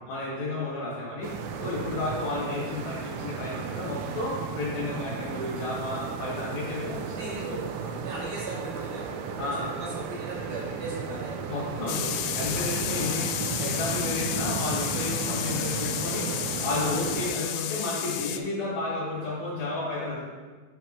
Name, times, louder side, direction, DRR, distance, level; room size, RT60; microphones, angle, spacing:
voice 1, 0.1-1.3 1.6-7.1 7.5-7.6 9.4-9.7 11.5-13.3 13.6-16.3 16.6-20.2, left 2 dB, 60° left, -6 dB, 3.2 m, -32 dB
sound 1, 1.2-17.3, right 6 dB, 85° right, 2.4 m, -34 dB
voice 2, 7.0-9.1 9.4-11.3 12.6-13.0 16.8-17.0, right 2 dB, 65° right, -8 dB, 4.1 m, -39 dB
sound 2, 11.9-18.4, left 11 dB, 90° left, 3.0 m, -32 dB
9.0 x 6.6 x 3.1 m, 1.4 s
omnidirectional pair, 5.4 m